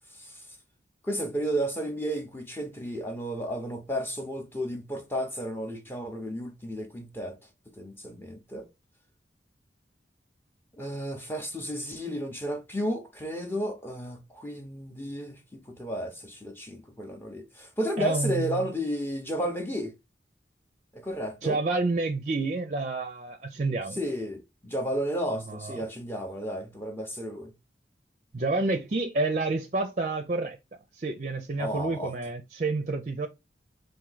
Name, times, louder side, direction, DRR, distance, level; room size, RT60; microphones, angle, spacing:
voice 1, 1.0-7.4 7.8-8.7 10.8-19.9 21.0-21.6 24.0-27.5 31.6-32.1, equal, 15° left, 0.7 m, -33 dB
voice 2, 18.0-18.7 21.4-24.0 25.3-25.8 28.3-30.6 30.9-33.3, right 3 dB, 40° right, 0.5 m, -29 dB
4.4 x 2.6 x 3.9 m
head